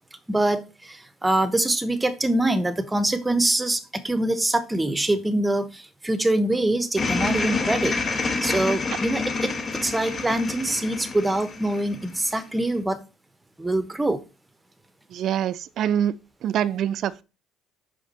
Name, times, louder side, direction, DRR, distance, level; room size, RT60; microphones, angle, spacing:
voice 1, 0.3-13.0 13.6-14.2, right 1 dB, 15° right, 1.1 m, -24 dB
sound 1, 7.0-12.4, left 4 dB, 35° left, 1.5 m, -28 dB
voice 2, 15.1-16.2 16.4-17.2, right 10 dB, 60° right, 0.4 m, -25 dB
5.9 x 4.9 x 4.1 m
supercardioid pair, 80°, 0 cm